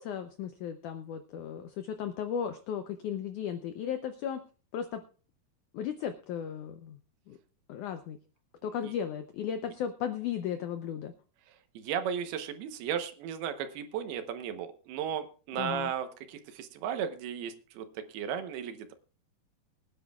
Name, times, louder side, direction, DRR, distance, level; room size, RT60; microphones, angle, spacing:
voice 1, 0.0-4.4 4.7-5.0 5.7-7.0 7.3-7.4 7.7-8.2 8.6-11.1 15.6-15.9, left 8 dB, 80° left, 8 dB, 1.7 m, -35 dB
voice 2, 11.8-18.9, right 8 dB, 80° right, 9 dB, 2.9 m, -35 dB
24.0 x 10.0 x 2.3 m, 0.38 s
omnidirectional pair, 4.5 m